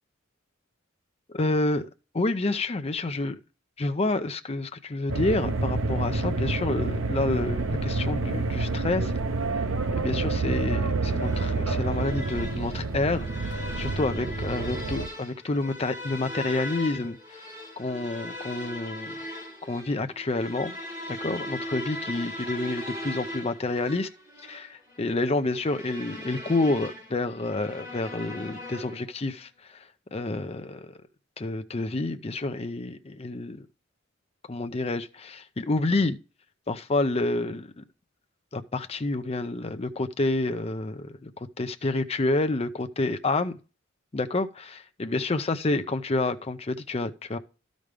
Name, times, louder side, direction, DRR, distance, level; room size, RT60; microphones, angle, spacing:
voice 1, 1.3-1.9 2.1-3.4 3.8-9.1 10.0-17.4 17.8-19.1 19.6-20.8 21.1-24.1 24.4-29.9 30.1-30.9 31.4-33.7 34.5-36.2 36.7-37.8 38.5-43.5 44.1-47.4, left 2 dB, 30° left, 0.6 m, -29 dB
sound 1, 5.1-15.1, right 3 dB, 80° right, 0.7 m, -28 dB
sound 2, 11.1-29.2, left 1 dB, 20° right, 3.6 m, -39 dB
12.5 x 5.2 x 3.3 m
head